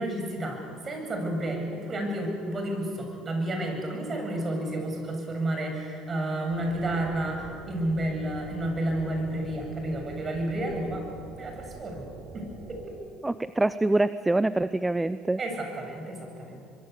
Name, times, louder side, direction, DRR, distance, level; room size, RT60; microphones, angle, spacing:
voice 1, 0.0-11.1 11.4-12.1 12.3-12.9 15.4-16.6, right 1 dB, 35° right, 3 dB, 8.0 m, -31 dB
sound 1, 6.5-12.9, right 3 dB, 65° right, 6.0 m, -45 dB
voice 2, 13.2-15.4, right 2 dB, 10° right, 14 dB, 0.6 m, -25 dB
24.5 x 23.0 x 8.4 m, 2.3 s
supercardioid pair, 90°, 0 cm